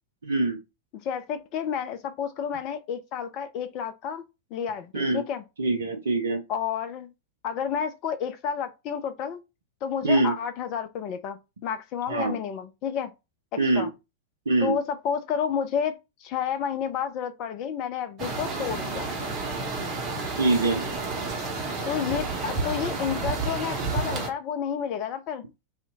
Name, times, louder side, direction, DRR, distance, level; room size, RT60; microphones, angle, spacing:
voice 1, 0.2-0.6 4.9-5.2 5.6-6.4 10.0-10.3 12.1-12.4 13.6-13.9 14.5-14.7 20.3-20.8, right 2 dB, 65° right, 0.4 m, -23 dB
voice 2, 1.0-4.2 4.5-5.4 6.5-7.1 7.4-9.4 9.8-13.1 13.5-13.9 14.6-19.1 21.9-25.4, left 8 dB, 40° left, 0.3 m, -30 dB
sound 1, 18.2-24.3, right 3 dB, 30° right, 0.8 m, -30 dB
2.6 x 2.1 x 2.7 m
figure-of-eight pair, 90°, 0 cm